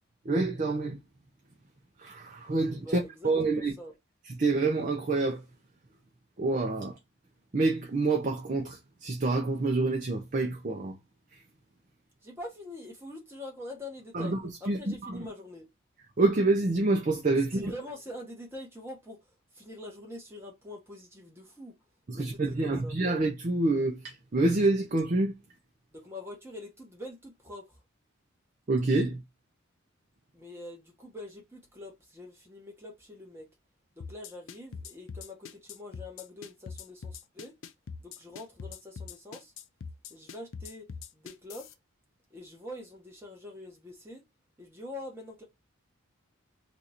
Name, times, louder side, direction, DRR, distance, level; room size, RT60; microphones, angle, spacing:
voice 1, 0.2-1.0 2.0-3.7 4.4-5.4 6.4-7.0 7.5-11.0 11.3-11.4 14.1-14.4 14.7-15.3 16.2-17.7 22.1-25.4 28.7-29.2, right 2 dB, 40° right, 0.5 m, -27 dB
voice 2, 2.8-3.9 12.2-15.7 17.5-21.7 22.1-22.9 25.9-27.8 30.3-33.5 33.9-37.5 38.0-39.5 40.1-40.9 41.1-41.7 42.3-44.2 44.6-45.4, left 1 dB, 10° right, 1.1 m, -44 dB
sound 1, 34.0-41.7, left 5 dB, 70° left, 0.5 m, -42 dB
2.8 x 2.5 x 4.2 m
head